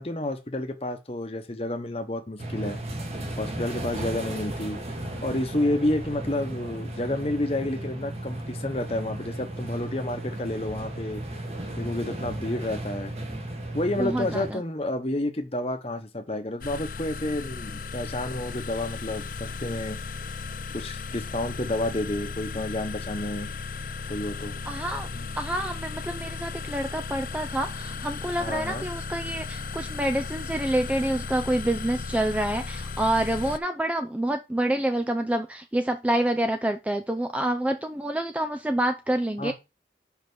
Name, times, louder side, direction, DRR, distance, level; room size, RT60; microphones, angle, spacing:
voice 1, 0.0-2.8 3.3-11.2 11.7-13.1 13.7-20.0 20.7-23.5 24.1-24.5 25.1-25.3 28.4-28.9 39.4-39.5, left 1 dB, 35° left, 6 dB, 1.0 m, -30 dB
sound 1, 2.4-14.5, right 1 dB, 35° right, 1.6 m, -35 dB
voice 2, 14.0-14.6 24.7-25.1 25.4-39.5, right 1 dB, 10° right, 6 dB, 0.4 m, -27 dB
sound 2, 16.6-33.6, left 4 dB, 50° left, 0.5 m, -36 dB
5.4 x 5.1 x 6.2 m, 0.26 s
head